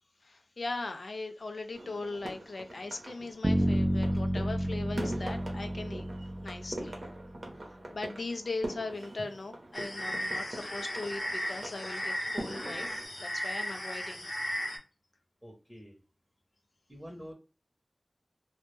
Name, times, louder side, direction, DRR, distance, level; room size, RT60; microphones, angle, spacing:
voice 1, 0.2-6.1 6.4-7.0 7.9-12.9 13.2-14.3, left 3 dB, 85° left, 0.4 m, -39 dB
sound 1, 1.7-13.0, right 1 dB, 80° right, 0.6 m, -43 dB
Bass guitar, 3.4-7.5, equal, 40° right, 0.3 m, -31 dB
sound 2, 9.7-14.8, equal, 55° left, 0.7 m, -36 dB
voice 2, 15.4-16.0 16.9-17.3, equal, 5° right, 0.7 m, -46 dB
2.1 x 2.1 x 3.0 m
wide cardioid pair, 50°, 0 cm